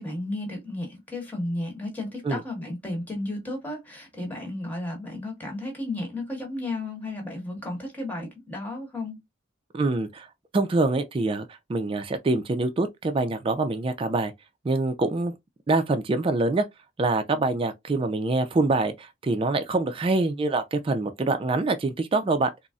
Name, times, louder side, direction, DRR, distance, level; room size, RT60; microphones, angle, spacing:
voice 1, 0.0-9.2, left 1 dB, 10° left, 1.2 m, -33 dB
voice 2, 9.7-10.3 10.5-14.3 14.6-15.3 15.7-16.7 17.0-22.5, right 3 dB, 30° right, 0.3 m, -25 dB
3.8 x 2.0 x 2.3 m
head